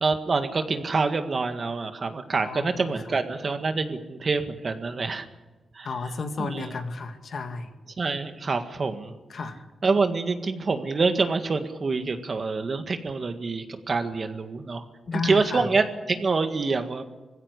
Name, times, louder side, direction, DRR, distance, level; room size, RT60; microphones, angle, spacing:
voice 1, 0.0-5.3 5.7-5.9 6.4-6.7 8.0-9.1 9.8-14.9 15.1-17.0, right 4 dB, 45° right, 7 dB, 1.8 m, -26 dB
voice 2, 2.4-2.8 5.8-7.7 9.3-9.6 15.1-15.7, left 4 dB, 60° left, 6 dB, 2.2 m, -32 dB
20.0 x 16.0 x 9.9 m, 1.2 s
wide cardioid pair, 110°, 0 cm